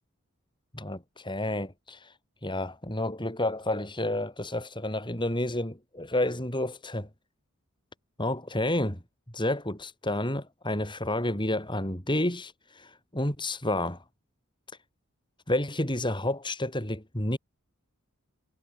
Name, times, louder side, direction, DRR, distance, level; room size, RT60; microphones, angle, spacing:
voice 1, 0.7-2.1 2.4-7.1 8.2-9.0 9.3-14.0 15.5-17.4, left 1 dB, 20° left, 5.9 m, -30 dB
head